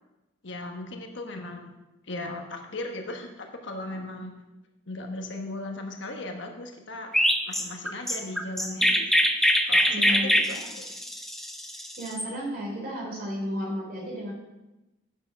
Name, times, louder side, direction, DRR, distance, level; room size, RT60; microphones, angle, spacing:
voice 1, 0.4-1.7 2.0-4.3 4.9-7.1 7.4-9.1 9.6-10.9, left 2 dB, 60° left, 3 dB, 1.2 m, -37 dB
Chirp tweet, 7.1-12.3, equal, ahead, 0.4 m, -24 dB
voice 2, 9.9-10.6 12.0-14.3, equal, 45° right, -1 dB, 3.1 m, -33 dB
8.9 x 6.8 x 5.9 m, 1.0 s
head